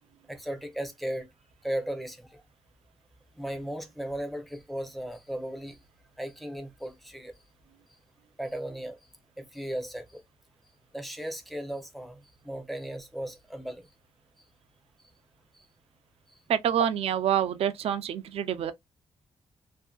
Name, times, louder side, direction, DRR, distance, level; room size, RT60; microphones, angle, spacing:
voice 1, 0.3-1.3 1.6-2.4 3.4-5.8 6.2-7.3 8.4-9.0 9.4-10.2 10.9-13.9 15.5-15.7, right 1 dB, ahead, 0.6 m, -36 dB
voice 2, 16.5-18.7, right 9 dB, 70° right, 0.4 m, -27 dB
2.5 x 2.5 x 2.2 m
wide cardioid pair, 150°, 11 cm